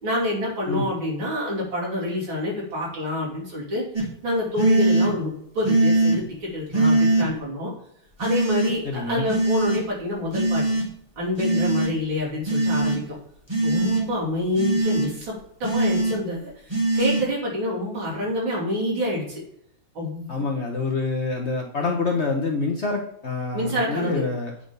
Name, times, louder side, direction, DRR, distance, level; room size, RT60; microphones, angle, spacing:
voice 1, 0.0-3.8 4.2-7.7 8.2-10.6 11.2-13.2 13.6-15.3 15.6-16.5 16.9-19.4 20.0-20.4 23.5-24.2, left 1 dB, 90° right, -5 dB, 3.6 m, -27 dB
sound 1, 3.9-4.0 4.6-5.1 5.6-6.2 6.7-7.3 8.2-8.7 9.3-9.8 10.3-10.8 11.4-11.9 12.4-13.0 13.5-14.0 14.5-15.1 15.6-16.1 16.7-17.2, right 2 dB, 15° right, 1.6 m, -21 dB
voice 2, 8.8-9.3 20.3-24.5, left 3 dB, 50° left, 1 dB, 0.8 m, -26 dB
8.1 x 3.8 x 5.2 m, 0.70 s
omnidirectional pair, 2.1 m